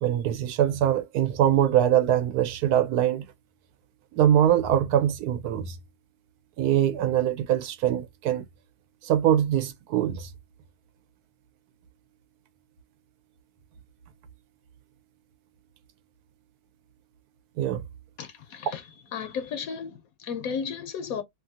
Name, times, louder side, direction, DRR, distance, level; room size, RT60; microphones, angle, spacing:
voice 1, 0.0-3.3 4.2-5.8 6.6-8.4 9.0-10.3 17.6-17.8, right 11 dB, 85° right, 1.1 m, -23 dB
voice 2, 18.2-18.8 19.1-21.2, left 6 dB, 75° left, 1.0 m, -34 dB
2.7 x 2.5 x 2.6 m
omnidirectional pair, 1.6 m